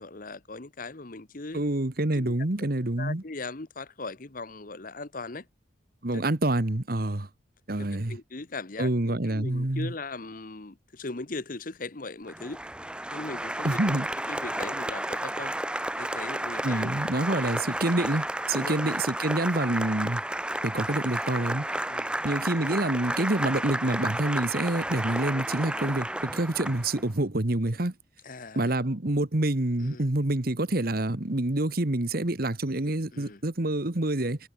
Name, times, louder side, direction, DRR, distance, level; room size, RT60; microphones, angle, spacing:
voice 1, 0.0-1.6 2.2-2.7 3.0-5.5 6.1-6.2 7.8-12.6 13.1-13.8 14.3-15.6 16.0-17.0 18.5-18.8 21.9-22.2 28.2-28.8 29.8-30.0 33.1-33.4, left 3 dB, 45° left, 1.1 m, -39 dB
voice 2, 1.5-3.2 6.0-7.3 7.7-8.2 8.8-9.9 13.6-14.1 16.6-20.2 20.6-21.7 22.2-27.9 28.5-34.4, right 1 dB, 50° right, 1.4 m, -27 dB
Applause, 12.3-27.1, right 1 dB, 5° right, 1.2 m, -32 dB
head